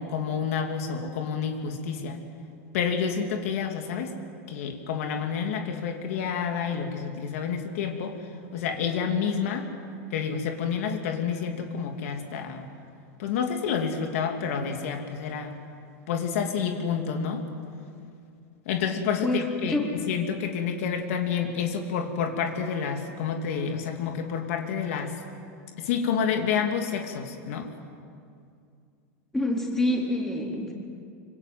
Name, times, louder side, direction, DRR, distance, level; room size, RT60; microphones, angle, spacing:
voice 1, 0.0-2.2 2.7-4.1 4.5-8.2 8.5-9.7 10.1-12.7 13.2-15.6 16.1-17.4 18.7-19.8 20.1-25.2 25.8-27.7, left 7 dB, 70° left, 4 dB, 2.9 m, -29 dB
voice 2, 19.2-19.8 29.3-30.7, left 1 dB, 5° left, -1 dB, 3.8 m, -27 dB
26.0 x 25.5 x 7.7 m, 2.4 s
supercardioid pair, 145°, 8 cm